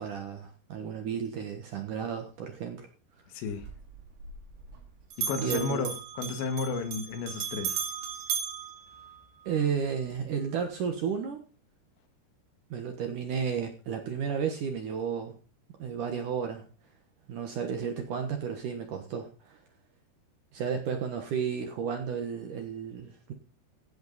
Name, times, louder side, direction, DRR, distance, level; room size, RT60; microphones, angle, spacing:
voice 1, 0.0-2.9 5.4-5.9 9.5-11.4 12.7-15.4 15.8-16.7 17.3-19.6 20.5-23.3, right 7 dB, 65° right, 2.2 m, -33 dB
voice 2, 3.3-3.6 5.2-7.8, left 4 dB, 75° left, 3.9 m, -33 dB
Bell, 3.5-4.9 5.1-9.6, right 7 dB, 80° right, 5.1 m, -36 dB
15.5 x 8.1 x 4.1 m
omnidirectional pair, 5.1 m